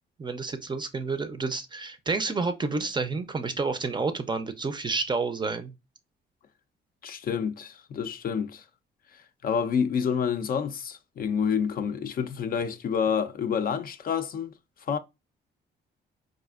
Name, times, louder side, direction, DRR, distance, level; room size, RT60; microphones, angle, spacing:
voice 1, 0.2-5.7, right 4 dB, 25° right, 0.4 m, -29 dB
voice 2, 7.0-8.6 9.1-14.5 14.9-15.0, left 7 dB, 50° left, 0.4 m, -28 dB
4.1 x 2.5 x 2.3 m
cardioid pair, 90°, 20 cm